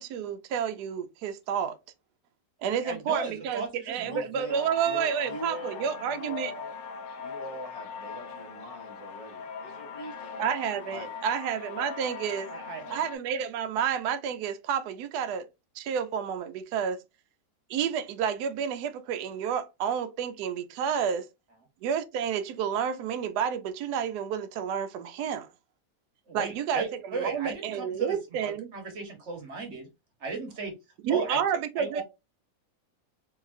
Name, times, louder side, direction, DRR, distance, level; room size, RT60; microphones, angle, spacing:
voice 1, 0.0-1.8 2.6-6.5 10.4-12.5 12.9-15.5 15.7-17.0 17.7-21.3 21.8-25.5 26.3-28.7 31.0-32.0, right 8 dB, 75° right, 1.1 m, -30 dB
voice 2, 2.8-4.2 12.5-13.0 26.3-29.9 30.2-30.7 31.1-31.4 31.8-32.0, right 3 dB, 50° right, 1.3 m, -36 dB
voice 3, 4.0-6.7 7.2-10.4 10.9-11.1, left 1 dB, 30° left, 0.7 m, -42 dB
sound 1, 4.5-13.2, left 5 dB, 70° left, 0.6 m, -41 dB
3.8 x 2.8 x 2.4 m
omnidirectional pair, 1.8 m